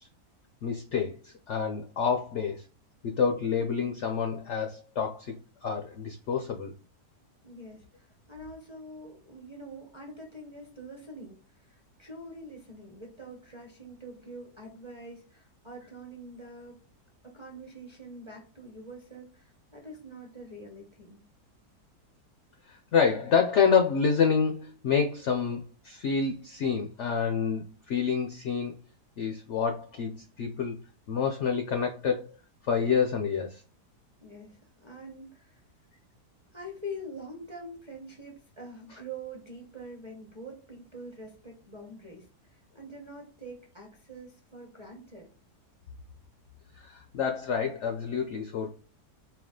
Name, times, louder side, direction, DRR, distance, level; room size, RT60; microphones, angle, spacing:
voice 1, 0.6-2.6 3.0-6.7 22.7-28.7 29.2-30.8 31.1-32.2 32.7-33.6 46.8-48.7, left 6 dB, 70° left, 0.6 m, -28 dB
voice 2, 7.4-16.8 17.2-21.2 34.2-35.6 36.5-45.3, right 1 dB, 25° right, 0.7 m, -45 dB
4.6 x 2.3 x 3.7 m
omnidirectional pair, 1.8 m